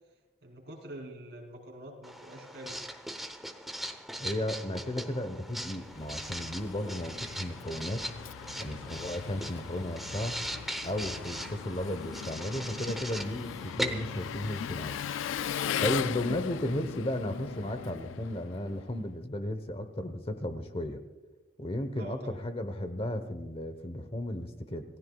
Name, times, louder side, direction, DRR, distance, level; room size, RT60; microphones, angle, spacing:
voice 1, 0.4-2.8 4.8-5.1 21.9-22.4, right 1 dB, 60° right, 0 dB, 3.7 m, -45 dB
Writing, 2.0-15.3, equal, ahead, 0.8 m, -40 dB
voice 2, 4.2-8.1 8.6-10.4 10.8-15.0 15.8-21.0 21.6-24.8, left 1 dB, 30° left, 9 dB, 0.9 m, -34 dB
Engine, 5.4-19.0, left 8 dB, 90° left, 0.3 m, -39 dB
27.5 x 16.0 x 2.4 m, 1.2 s
head